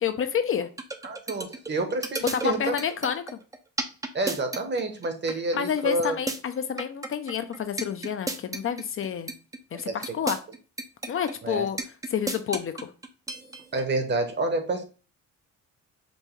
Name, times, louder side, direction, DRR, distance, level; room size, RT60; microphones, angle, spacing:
voice 1, 0.0-0.7 2.3-3.4 5.5-9.3 9.7-10.4 11.1-11.8 12.1-12.9, left 8 dB, 45° left, 9 dB, 0.5 m, -29 dB
sound 1, 0.8-13.8, right 2 dB, 10° right, 0.4 m, -32 dB
voice 2, 1.0-2.7 4.1-6.2 9.9-10.0 11.4-11.7 13.7-14.8, right 2 dB, 35° right, 7 dB, 0.9 m, -28 dB
5.3 x 2.2 x 3.1 m, 0.35 s
cardioid pair, 90°, 30 cm